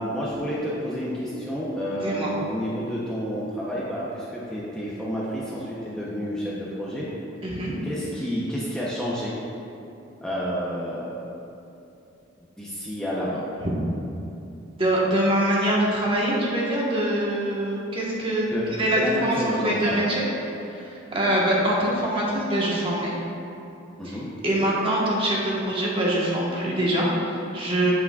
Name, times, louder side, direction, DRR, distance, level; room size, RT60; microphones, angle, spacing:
voice 1, 0.0-7.1 7.8-9.3 10.2-11.2 12.4-13.4 18.5-20.1 24.0-24.3, equal, 5° left, -7 dB, 0.7 m, -30 dB
voice 2, 2.0-2.3 7.4-7.7 14.8-18.5 18.8-20.3 20.6-23.2 24.0-24.2 24.4-27.9, right 1 dB, 25° right, -5 dB, 1.2 m, -24 dB
8.2 x 7.9 x 2.3 m, 2.8 s
head